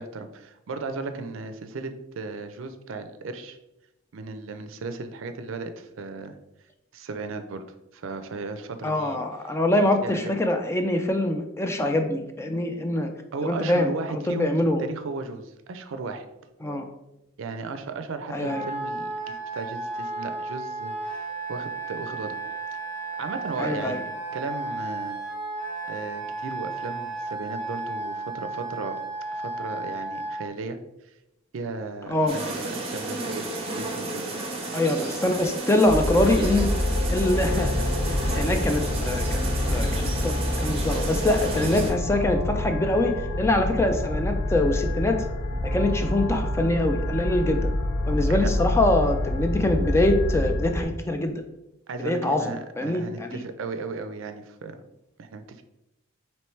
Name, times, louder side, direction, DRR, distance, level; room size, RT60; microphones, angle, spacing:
voice 1, 0.0-3.6 4.1-6.4 6.9-7.6 7.9-9.2 10.0-10.3 13.3-14.5 14.8-16.3 17.4-22.4 23.2-24.0 24.3-25.2 25.9-29.0 29.3-30.8 31.5-33.5 33.8-34.2 34.5-34.7 34.9-35.2 48.3-48.5 51.9-54.8 55.2-55.6, right 3 dB, 70° right, 8 dB, 0.4 m, -35 dB
voice 2, 8.8-13.1 13.4-14.8 16.6-16.9 18.3-18.6 23.6-24.0 32.1-32.4 34.7-36.7 37.1-45.3 45.6-47.7 48.1-51.4 52.0-53.4, left 1 dB, 15° left, 5 dB, 0.3 m, -24 dB
Wind instrument woodwind instrument, 18.4-30.4, right 3 dB, 60° left, 1.5 m, -33 dB
sound 1, 32.3-41.9, right 2 dB, 30° right, 0.8 m, -32 dB
sound 2, 35.9-50.8, left 1 dB, 80° left, 0.7 m, -27 dB
4.5 x 3.0 x 3.1 m, 0.93 s
head